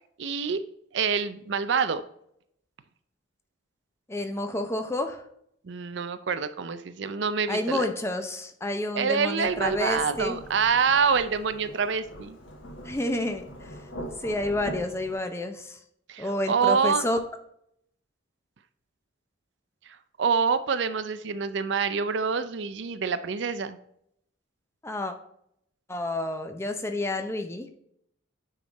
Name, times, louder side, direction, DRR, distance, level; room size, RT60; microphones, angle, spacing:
voice 1, 0.2-0.6 0.9-2.0 5.6-7.9 8.9-12.4 16.1-17.1 19.9-23.8, right 5 dB, 60° right, 12 dB, 0.5 m, -26 dB
voice 2, 4.1-5.2 7.5-10.4 12.8-13.7 14.2-15.8 16.2-17.2 24.8-25.1 25.9-27.7, left 1 dB, 15° left, 6 dB, 0.6 m, -29 dB
Thunderstorm / Rain, 9.4-15.1, equal, 75° left, 1.5 m, -42 dB
9.2 x 3.7 x 4.0 m, 0.72 s
head